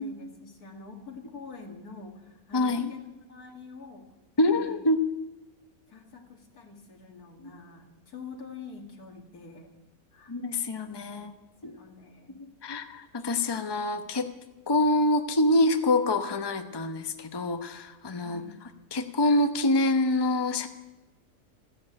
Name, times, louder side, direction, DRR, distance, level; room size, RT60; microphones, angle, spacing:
voice 1, 0.0-3.0 3.3-4.1 4.5-4.8 5.9-9.7 10.1-10.3 11.1-11.3 11.6-12.4 18.2-18.6, left 4 dB, 80° left, 3 dB, 2.6 m, -46 dB
voice 2, 2.5-2.9 4.4-5.0 10.3-11.3 11.6-11.8 12.3-14.3 14.7-20.7, left 2 dB, 20° left, 7 dB, 0.9 m, -26 dB
14.5 x 11.0 x 8.8 m, 1.1 s
omnidirectional pair, 1.6 m